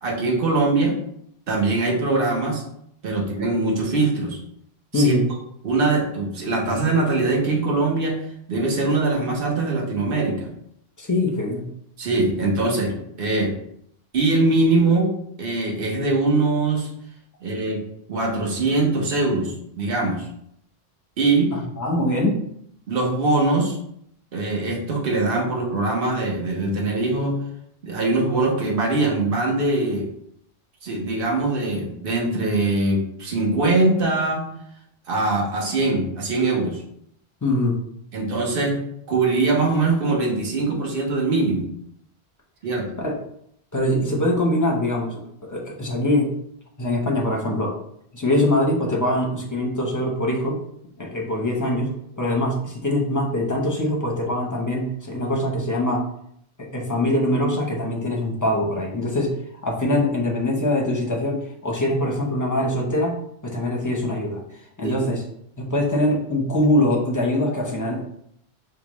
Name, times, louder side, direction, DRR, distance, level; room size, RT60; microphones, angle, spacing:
voice 1, 0.0-1.0 1.5-2.6 3.0-4.4 4.9-5.1 5.6-10.5 12.0-13.5 14.1-15.1 15.4-16.9 17.4-17.8 18.1-20.3 21.2-21.5 22.9-23.8 24.3-27.4 27.8-30.1 30.8-34.5 35.1-36.8 38.1-38.8 39.1-41.7 42.6-42.9 64.8-65.0, right 2 dB, 60° right, -1 dB, 1.1 m, -22 dB
voice 2, 4.9-5.3 11.0-11.7 21.5-22.4 37.4-37.8 43.0-43.2 43.7-46.3 46.8-47.8 48.1-50.6 51.0-56.0 56.6-59.3 59.6-63.1 63.4-64.4 64.8-65.2 65.6-68.0, left 1 dB, 20° left, -1 dB, 0.7 m, -23 dB
5.1 x 2.2 x 3.0 m, 0.71 s
omnidirectional pair, 1.1 m